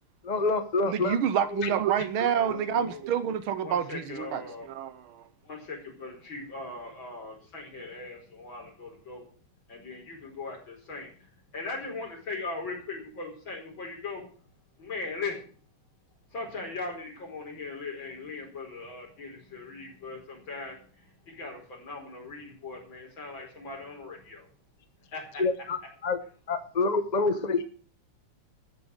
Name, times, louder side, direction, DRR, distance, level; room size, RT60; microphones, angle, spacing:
voice 1, 0.2-1.7 25.4-26.2 26.5-27.7, left 3 dB, 40° left, 0.6 m, -27 dB
voice 2, 0.9-5.3, right 9 dB, 75° right, 1.7 m, -28 dB
voice 3, 2.4-2.9 3.6-4.7 5.4-9.3 9.7-11.1 11.5-14.3 14.8-15.5 16.3-24.5 25.1-25.4, left 3 dB, 60° left, 5.4 m, -39 dB
13.5 x 7.8 x 8.1 m
omnidirectional pair, 2.4 m